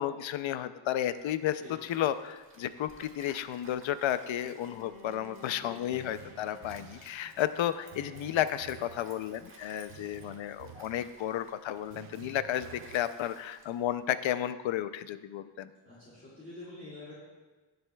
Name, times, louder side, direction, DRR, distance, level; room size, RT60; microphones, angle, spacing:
voice 1, 0.0-15.7, left 11 dB, 85° left, 13 dB, 0.6 m, -33 dB
Stream, 1.0-14.1, right 2 dB, 25° right, 1.2 m, -57 dB
Bowed string instrument, 4.6-9.5, left 2 dB, 55° left, 1.6 m, -55 dB
sound 1, 5.9-7.1 7.9-9.1 9.9-11.1 11.9-13.1, right 10 dB, 85° right, 0.7 m, -51 dB
voice 2, 15.8-17.1, left 2 dB, 25° left, -9 dB, 2.3 m, -46 dB
17.5 x 7.8 x 2.3 m, 1.3 s
wide cardioid pair, 180°, 45 cm